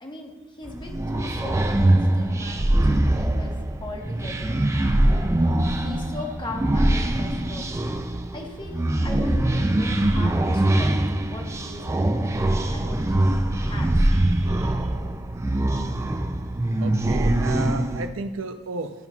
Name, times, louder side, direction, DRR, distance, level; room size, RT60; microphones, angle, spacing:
voice 1, 0.0-5.3 5.8-8.0 8.3-13.3 13.6-13.9, left 2 dB, 25° left, 1 dB, 1.0 m, -39 dB
sound 1, 0.6-18.1, right 1 dB, 15° right, 0.4 m, -23 dB
voice 2, 9.8-10.2 14.3-14.9 16.8-18.9, right 3 dB, 80° right, 9 dB, 0.5 m, -34 dB
11.0 x 5.5 x 2.3 m, 1.3 s
head